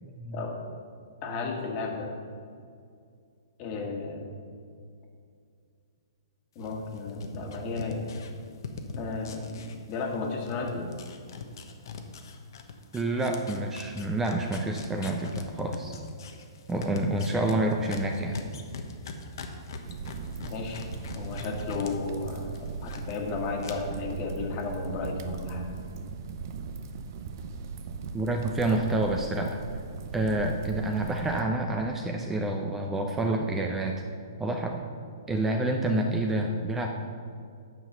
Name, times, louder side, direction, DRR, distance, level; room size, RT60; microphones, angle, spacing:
voice 1, 0.0-0.4 12.9-15.9 16.7-18.4 28.1-29.6 30.1-33.9 34.4-34.8 35.3-36.9, right 2 dB, 10° right, 3 dB, 0.7 m, -28 dB
voice 2, 1.2-2.1 3.6-4.3 6.5-8.0 9.0-10.9 20.4-20.8 21.1-25.7, left 3 dB, 35° left, 1 dB, 1.7 m, -33 dB
sound 1, 6.6-10.2 10.4-21.9 22.2-23.2 23.6-23.7, left 4 dB, 60° left, 1.0 m, -41 dB
sound 2, 19.8-31.4, right 5 dB, 50° right, 0.6 m, -39 dB
9.3 x 5.8 x 5.5 m, 2.3 s
hypercardioid pair, 125°, 2 cm